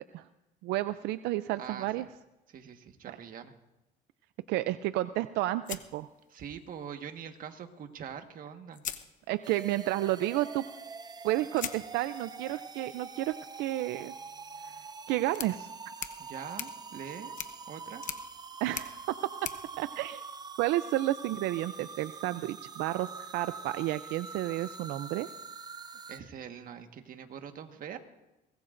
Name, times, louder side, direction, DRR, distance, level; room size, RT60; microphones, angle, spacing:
voice 1, 0.6-2.1 4.5-6.1 9.3-10.6 11.2-14.1 15.1-15.7 18.6-19.1 19.4-19.5 19.8-20.2 20.6-25.3, right 15 dB, 90° right, 12 dB, 0.5 m, -31 dB
voice 2, 1.6-2.1 2.5-3.5 6.3-8.8 16.2-17.3 17.7-18.1 26.1-28.0, right 8 dB, 55° right, 6 dB, 1.5 m, -43 dB
sound 1, 5.6-6.8 8.1-8.2 8.7-9.7 11.5-20.7, left 9 dB, 50° left, 1.0 m, -44 dB
sound 2, 9.4-26.2, right 5 dB, 25° right, 0.7 m, -44 dB
23.5 x 20.0 x 2.6 m, 0.97 s
cardioid pair, 110°, 17 cm